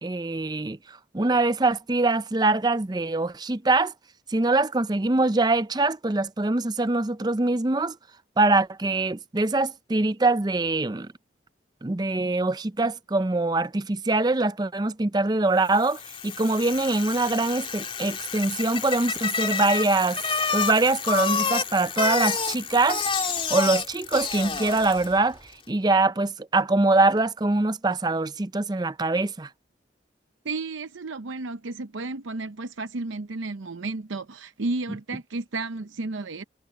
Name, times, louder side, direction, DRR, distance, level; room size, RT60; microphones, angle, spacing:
voice 1, 0.0-3.9 4.3-8.0 8.4-11.1 11.8-20.2 20.5-23.2 23.5-25.4 25.7-29.5, right 2 dB, 20° right, 0.5 m, -23 dB
Bicycle, 15.8-25.2, left 5 dB, 30° left, 3.2 m, -29 dB
voice 2, 30.4-36.4, right 3 dB, 85° right, 0.7 m, -32 dB
head